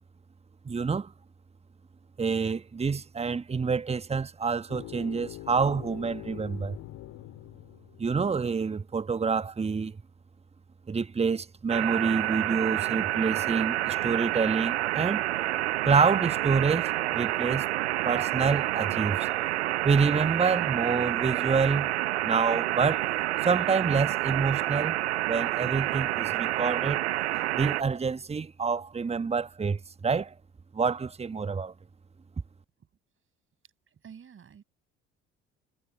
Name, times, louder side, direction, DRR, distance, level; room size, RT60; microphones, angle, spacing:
voice 1, 0.6-1.1 2.2-6.8 8.0-10.0 10.9-15.2 15.8-17.7 18.0-19.2 19.8-21.9 22.2-23.1 23.4-25.0 25.3-27.0 27.5-30.3 30.7-31.7, right 5 dB, 20° right, 1.3 m, -27 dB
sound 1, 4.7-8.6, left 17 dB, 55° left, 4.5 m, -44 dB
sound 2, 11.7-27.8, right 16 dB, 75° right, 0.5 m, -28 dB
voice 2, 33.9-34.6, right 7 dB, 40° right, 7.1 m, -49 dB
figure-of-eight pair, 55°, 33 cm